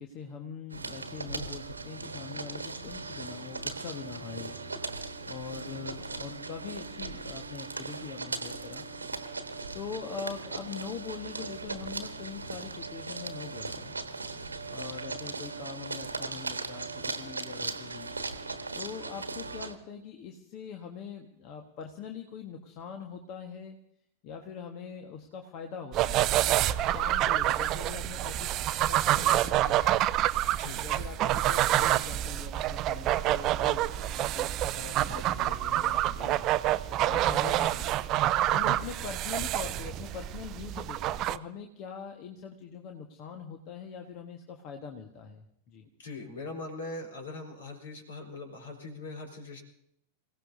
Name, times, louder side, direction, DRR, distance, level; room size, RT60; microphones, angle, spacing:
voice 1, 0.0-8.9 9.7-13.9 14.7-18.1 18.7-23.8 24.2-26.6 26.9-30.0 30.8-36.5 37.0-38.0 38.5-45.9, left 6 dB, 40° left, 4 dB, 1.4 m, -43 dB
sound 1, 0.7-19.7, right 3 dB, 80° right, 1.3 m, -38 dB
sound 2, 25.9-41.4, right 13 dB, 35° right, 0.5 m, -27 dB
voice 2, 30.5-30.8 46.0-49.6, left 2 dB, 65° left, 3 dB, 4.0 m, -41 dB
27.5 x 17.0 x 2.7 m, 0.75 s
figure-of-eight pair, 90°, 0 cm